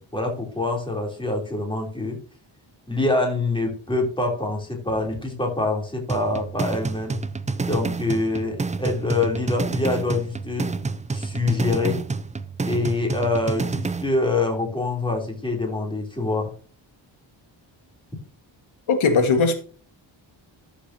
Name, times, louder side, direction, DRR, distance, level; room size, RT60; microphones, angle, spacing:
voice 1, 0.1-2.2 2.9-7.2 7.6-10.7 11.1-12.0 12.6-16.5, left 2 dB, 10° left, 1 dB, 3.4 m, -25 dB
sound 1, 6.1-14.1, right 4 dB, 15° right, 0.3 m, -28 dB
voice 2, 18.9-19.5, left 4 dB, 80° left, 7 dB, 1.9 m, -18 dB
13.0 x 7.2 x 2.8 m, 0.39 s
wide cardioid pair, 170°, 48 cm